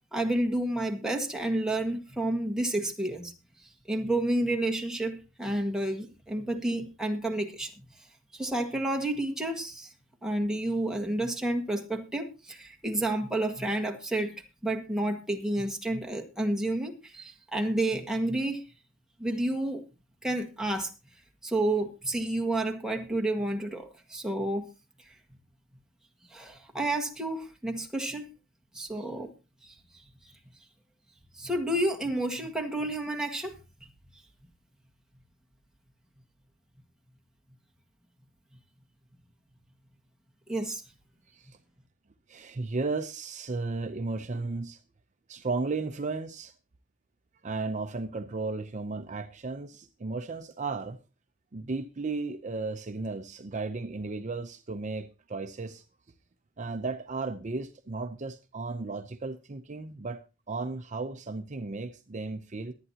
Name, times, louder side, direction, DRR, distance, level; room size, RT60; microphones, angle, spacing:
voice 1, 0.1-3.3 3.9-7.8 8.3-9.9 10.2-14.3 14.6-18.6 19.2-19.8 20.2-20.9 21.4-24.7 26.3-28.3 28.7-29.3 29.6-29.7 31.3-33.5 40.5-40.8, right 1 dB, 5° right, 1.7 m, -30 dB
voice 2, 41.3-41.6 42.3-44.8 45.3-46.5 47.4-51.0 51.5-55.8 56.6-60.2 60.5-62.7, right 3 dB, 35° right, 0.6 m, -34 dB
22.0 x 9.0 x 2.8 m
head